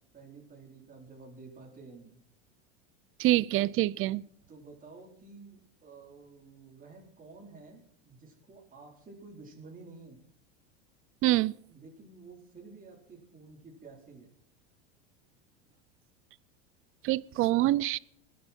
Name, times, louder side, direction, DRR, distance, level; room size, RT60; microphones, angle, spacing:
voice 1, 0.1-2.2 4.5-10.2 11.7-14.3, right 3 dB, 25° right, 4.2 m, -51 dB
voice 2, 3.2-4.2 11.2-11.6 17.0-18.0, right 16 dB, 40° right, 0.5 m, -25 dB
21.5 x 9.4 x 4.4 m
supercardioid pair, 115°, 34 cm